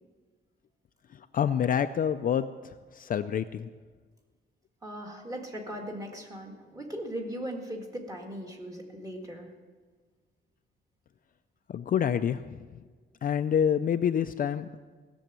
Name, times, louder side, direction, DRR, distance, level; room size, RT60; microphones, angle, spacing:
voice 1, 1.3-2.4 3.0-3.7 11.7-12.6 13.2-14.8, left 8 dB, 45° left, 9 dB, 0.4 m, -27 dB
voice 2, 4.8-9.5, equal, 15° right, 1 dB, 1.8 m, -38 dB
16.5 x 7.1 x 8.9 m, 1.5 s
wide cardioid pair, 175°, 21 cm